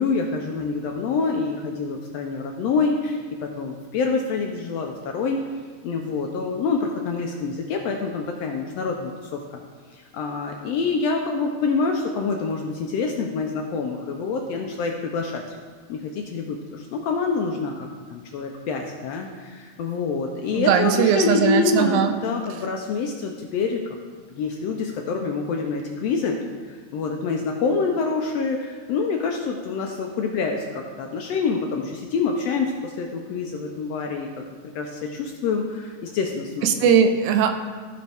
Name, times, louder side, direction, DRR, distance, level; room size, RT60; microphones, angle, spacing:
voice 1, 0.0-5.4 5.8-9.6 9.9-15.6 15.9-23.8 24.3-26.4 26.7-34.5 34.7-36.9, left 4 dB, 75° left, 2 dB, 1.5 m, -26 dB
voice 2, 20.6-22.2 36.6-37.5, right 7 dB, 85° right, 7 dB, 2.1 m, -19 dB
15.0 x 5.2 x 3.5 m, 1.5 s
omnidirectional pair, 3.5 m